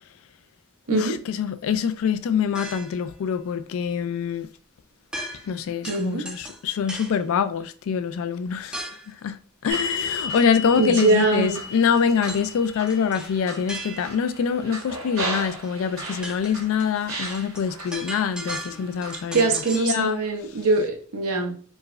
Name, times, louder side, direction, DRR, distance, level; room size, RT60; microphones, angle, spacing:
voice 1, 0.9-4.5 5.4-9.4 9.6-20.2, left 7 dB, 65° left, 0.3 m, -25 dB
sound 1, 2.5-3.1 5.1-5.6 5.8-7.2 8.7-9.1 12.3-12.5 12.9-14.3 15.6-15.7 16.0-19.9, right 1 dB, 5° right, 0.4 m, -37 dB
voice 2, 5.8-6.3 10.8-11.6 19.3-21.5, right 3 dB, 80° right, 0.8 m, -22 dB
sound 2, 9.7-16.7 17.1-17.9 18.5-19.2, equal, 65° right, 1.3 m, -34 dB
4.6 x 2.1 x 2.4 m
head